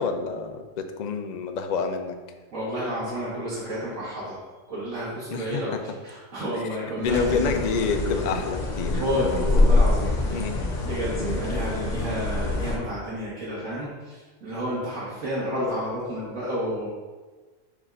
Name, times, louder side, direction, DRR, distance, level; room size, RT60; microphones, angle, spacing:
voice 1, 0.0-2.2 5.3-5.6 7.0-9.0 10.3-10.6, left 5 dB, 60° left, 6 dB, 0.4 m, -28 dB
voice 2, 2.5-4.4 4.7-5.7 6.0-7.6 9.0-10.5 10.8-16.9, equal, 85° right, -8 dB, 1.8 m, -30 dB
sound 1, 7.0-12.8, left 2 dB, 40° left, 0.9 m, -25 dB
7.1 x 2.4 x 5.5 m, 1.3 s
omnidirectional pair, 1.3 m